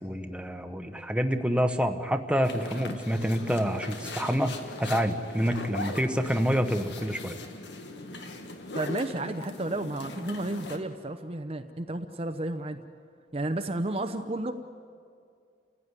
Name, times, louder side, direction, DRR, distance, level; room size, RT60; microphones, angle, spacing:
voice 1, 0.0-7.4, equal, 5° right, 6 dB, 1.1 m, -27 dB
sound 1, 2.4-10.8, left 2 dB, 85° left, 1.8 m, -40 dB
voice 2, 8.7-12.8 13.3-14.5, right 1 dB, 35° right, 6 dB, 0.8 m, -32 dB
29.5 x 16.0 x 9.8 m, 2.4 s
head